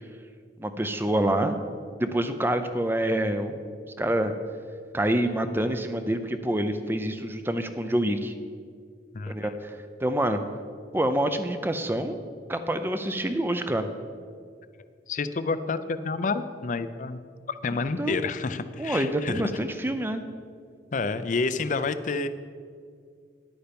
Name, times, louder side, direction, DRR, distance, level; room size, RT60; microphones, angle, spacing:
voice 1, 0.6-1.6 2.0-3.6 4.0-4.3 4.9-8.3 9.3-10.4 10.9-12.2 12.5-13.9 18.0-18.2 18.8-20.2, right 1 dB, 10° right, 8 dB, 0.5 m, -27 dB
voice 2, 9.1-9.5 15.1-17.2 17.5-19.4 20.9-22.3, left 4 dB, 45° left, 12 dB, 0.5 m, -29 dB
10.5 x 8.8 x 5.3 m, 2.1 s
head